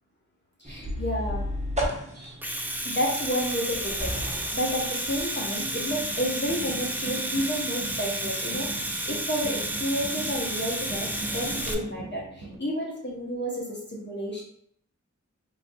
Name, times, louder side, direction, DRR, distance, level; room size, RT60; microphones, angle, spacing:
voice 1, 0.6-1.4 2.1-2.4 2.8-14.4, equal, 35° left, -3 dB, 0.8 m, -31 dB
sound 1, 0.6-11.8, equal, 20° right, 0.8 m, -37 dB
Domestic sounds home sounds, 2.2-11.7, right 1 dB, 5° right, 0.4 m, -31 dB
sound 2, 5.5-12.6, right 2 dB, 85° right, 0.6 m, -41 dB
3.2 x 2.5 x 2.6 m, 0.67 s
wide cardioid pair, 45°, 31 cm